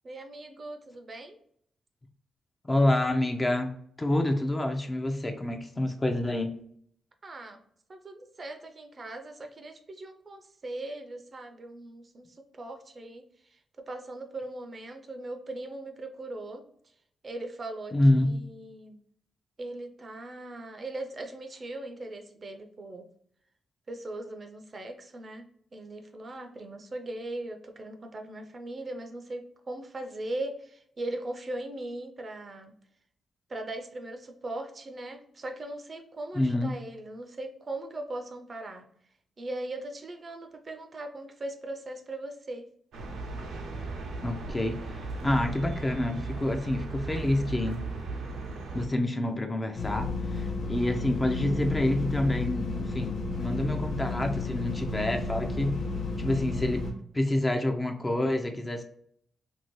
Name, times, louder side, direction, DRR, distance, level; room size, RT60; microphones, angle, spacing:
voice 1, 0.0-1.4 7.2-7.6 7.9-16.6 17.2-19.0 19.6-23.0 23.9-32.7 33.5-38.9 39.4-42.6, right 2 dB, 40° right, 6 dB, 0.5 m, -39 dB
voice 2, 2.6-3.7 4.0-6.5 17.9-18.3 36.4-36.8 44.2-47.8 48.7-55.8 56.2-56.8 57.1-58.8, left 1 dB, 25° left, 5 dB, 0.5 m, -27 dB
sound 1, 42.9-48.9, right 3 dB, 85° right, 0.6 m, -37 dB
sound 2, 49.8-56.9, left 3 dB, 80° left, 0.9 m, -32 dB
2.8 x 2.7 x 3.0 m, 0.66 s
cardioid pair, 75°, 0 cm